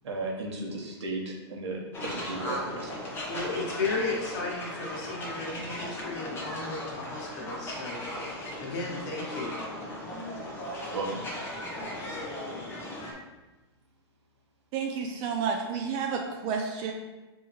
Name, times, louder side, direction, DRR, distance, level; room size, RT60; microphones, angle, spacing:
voice 1, 0.0-3.1 10.9-11.2, right 2 dB, 85° right, -1 dB, 1.2 m, -35 dB
sound 1, 1.9-13.1, left 1 dB, 15° left, 0.9 m, -37 dB
voice 2, 3.3-9.5, left 3 dB, 50° left, -3 dB, 1.5 m, -34 dB
voice 3, 14.7-16.9, right 6 dB, 35° right, 3 dB, 0.4 m, -30 dB
5.5 x 2.8 x 3.1 m, 1.1 s
hypercardioid pair, 140°, 14 cm